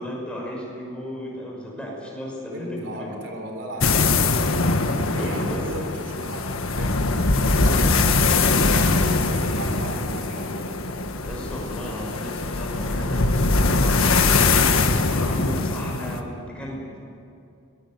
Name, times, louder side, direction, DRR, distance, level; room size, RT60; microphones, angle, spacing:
voice 1, 0.0-3.2 5.1-5.6 7.6-7.8 11.2-14.1 14.3-16.9, equal, 5° left, -3 dB, 6.0 m, -35 dB
voice 2, 2.5-4.6 5.1-6.4 6.8-6.9 7.4-10.6, right 1 dB, 60° right, 3 dB, 3.6 m, -37 dB
sound 1, 3.8-16.2, left 3 dB, 90° left, 1.6 m, -22 dB
23.5 x 21.5 x 8.0 m, 2.6 s
head